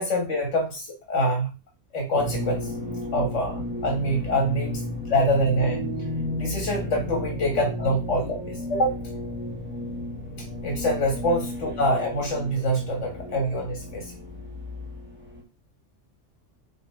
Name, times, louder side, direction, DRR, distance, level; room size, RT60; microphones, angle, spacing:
voice 1, 0.0-1.5 1.9-2.7 3.1-5.8 6.4-9.0 10.6-14.1, equal, 80° left, 1 dB, 1.9 m, -25 dB
sound 1, 2.1-15.4, left 1 dB, 10° right, 1.4 m, -33 dB
7.8 x 3.0 x 4.8 m, 0.29 s
omnidirectional pair, 1.2 m